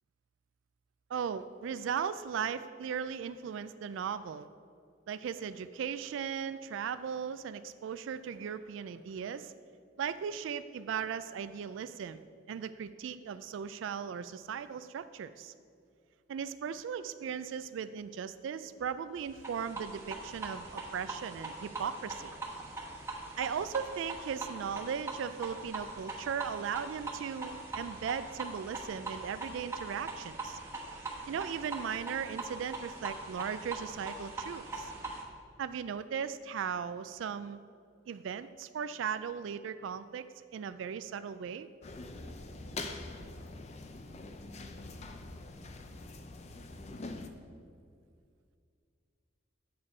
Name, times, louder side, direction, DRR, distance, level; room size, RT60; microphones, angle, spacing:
voice 1, 1.1-4.5 5.1-9.5 10.0-12.2 12.5-15.5 16.3-22.3 23.4-30.6 31.3-34.9 35.6-37.6 38.1-41.7, right 7 dB, 80° right, 13 dB, 0.3 m, -37 dB
sound 1, 19.3-35.2, right 2 dB, 15° right, 1.1 m, -42 dB
sound 2, 41.8-47.3, left 2 dB, 35° left, 0.5 m, -44 dB
8.6 x 7.0 x 4.8 m, 2.3 s
head